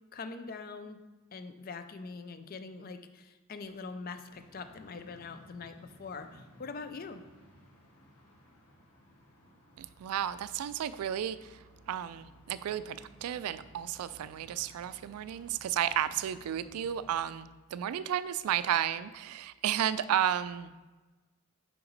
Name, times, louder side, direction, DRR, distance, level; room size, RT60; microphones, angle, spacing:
voice 1, 0.1-1.0 1.3-7.2, left 4 dB, 40° left, 9 dB, 0.4 m, -43 dB
sound 1, 4.3-17.1, equal, 85° left, 1.5 m, -59 dB
voice 2, 9.8-20.7, right 10 dB, 80° right, 16 dB, 0.3 m, -33 dB
5.7 x 5.1 x 4.0 m, 1.2 s
head